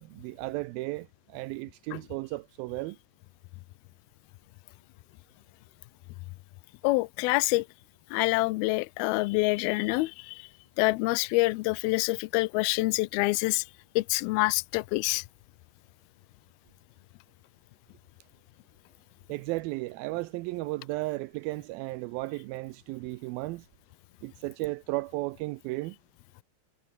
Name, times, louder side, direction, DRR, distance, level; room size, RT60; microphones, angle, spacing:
voice 1, 0.0-3.0 19.3-23.7 24.2-26.0, right 21 dB, 85° right, 2.2 m, -34 dB
voice 2, 6.8-7.7 8.1-10.5 10.8-13.6 14.0-15.2, left 23 dB, 80° left, 2.3 m, -26 dB
omnidirectional pair, 4.7 m